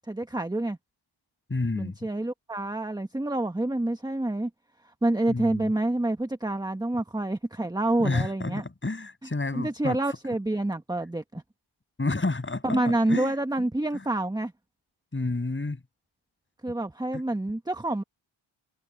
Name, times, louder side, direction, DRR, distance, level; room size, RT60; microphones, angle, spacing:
voice 1, 0.1-0.8 1.7-4.5 4.8-8.6 9.5-11.4 12.6-14.5 16.6-18.0, right 1 dB, 10° right, 1.3 m, -28 dB
voice 2, 1.5-2.0 5.3-5.7 8.0-10.0 12.0-13.3 15.1-15.8, left 2 dB, 25° left, 7.0 m, -30 dB
cardioid pair, 80°, 48 cm